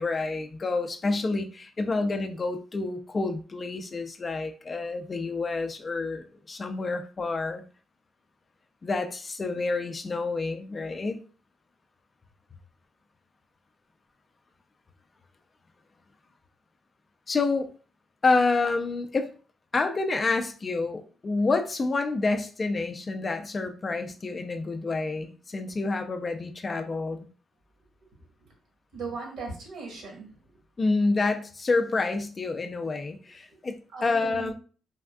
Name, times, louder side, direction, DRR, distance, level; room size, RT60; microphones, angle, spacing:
voice 1, 0.0-7.6 8.8-11.2 17.3-17.7 18.2-19.3 19.7-27.3 30.8-34.5, left 3 dB, 35° left, 7 dB, 0.4 m, -28 dB
voice 2, 28.9-30.4 33.5-33.6 33.9-34.5, right 4 dB, 70° right, 0 dB, 1.2 m, -38 dB
3.4 x 2.4 x 2.2 m, 0.39 s
cardioid pair, 90°, 0 cm